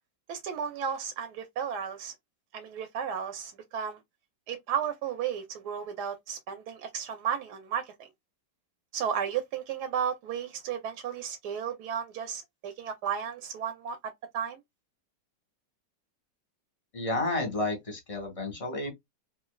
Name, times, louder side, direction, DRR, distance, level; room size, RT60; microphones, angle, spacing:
voice 1, 0.3-2.1 2.5-4.0 4.5-8.1 8.9-14.6, right 8 dB, 75° right, 1.1 m, -34 dB
voice 2, 16.9-18.9, left 2 dB, 20° left, 1.1 m, -31 dB
3.1 x 2.6 x 2.2 m
omnidirectional pair, 1.9 m